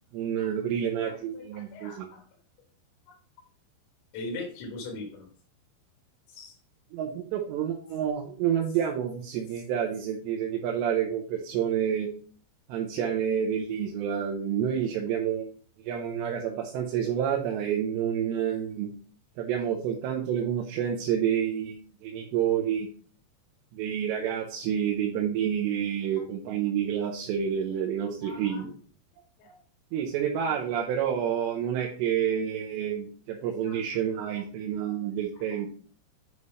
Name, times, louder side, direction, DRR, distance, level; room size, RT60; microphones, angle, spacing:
voice 1, 0.1-2.1 6.9-12.1 12.7-15.5 15.8-18.9 19.4-22.9 23.7-28.7 29.9-35.7, right 9 dB, 80° right, 0 dB, 3.0 m, -29 dB
voice 2, 1.1-2.2 3.1-3.2 4.1-5.3 6.3-6.6 28.2-28.7 29.4-29.6 33.7-33.8 35.5-35.6, left 2 dB, 90° left, 1 dB, 3.9 m, -40 dB
8.3 x 3.3 x 5.5 m, 0.43 s
omnidirectional pair, 5.0 m